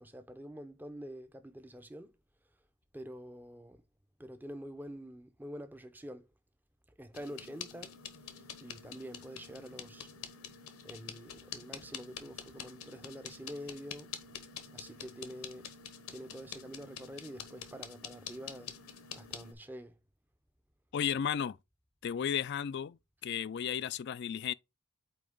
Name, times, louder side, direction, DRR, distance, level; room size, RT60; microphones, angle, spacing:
voice 1, 0.0-2.1 2.9-3.8 4.2-6.2 7.0-7.9 8.6-10.1 10.8-14.1 14.7-15.7 16.1-18.7 19.1-19.9, equal, 10° right, 0.6 m, -46 dB
sound 1, 7.1-19.5, left 7 dB, 80° left, 1.1 m, -47 dB
voice 2, 20.9-21.6 22.0-24.5, left 8 dB, 50° left, 0.3 m, -34 dB
8.6 x 2.9 x 3.8 m
head